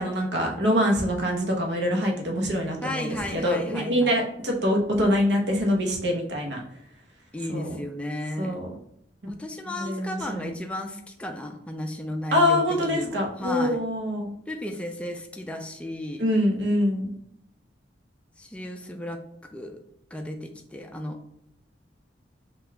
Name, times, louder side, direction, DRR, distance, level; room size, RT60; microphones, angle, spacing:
voice 1, 0.0-6.6 7.5-7.7 8.4-8.7 9.8-10.5 12.3-14.3 16.2-17.1, equal, 65° right, 0 dB, 0.9 m, -24 dB
voice 2, 2.8-4.1 7.3-8.6 9.3-13.8 14.5-16.2 18.4-19.2 19.5-19.8 20.1-21.2, left 1 dB, 5° left, 3 dB, 0.3 m, -34 dB
5.3 x 2.4 x 3.3 m, 0.73 s
head